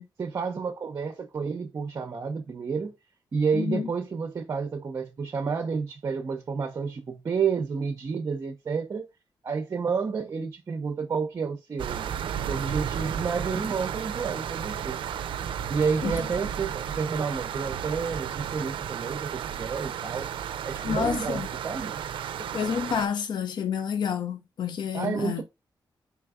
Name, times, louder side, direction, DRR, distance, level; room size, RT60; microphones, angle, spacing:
voice 1, 0.2-3.0 3.3-9.1 9.4-15.0 15.7-20.3 20.6-22.0 24.9-25.4, right 5 dB, 40° right, 0.6 m, -30 dB
voice 2, 3.5-3.9 16.0-16.2 20.8-21.5 22.4-25.4, left 7 dB, 60° left, 0.5 m, -29 dB
sound 1, 11.8-23.1, right 9 dB, 80° right, 0.4 m, -33 dB
4.5 x 3.4 x 2.3 m
wide cardioid pair, 145°, 8 cm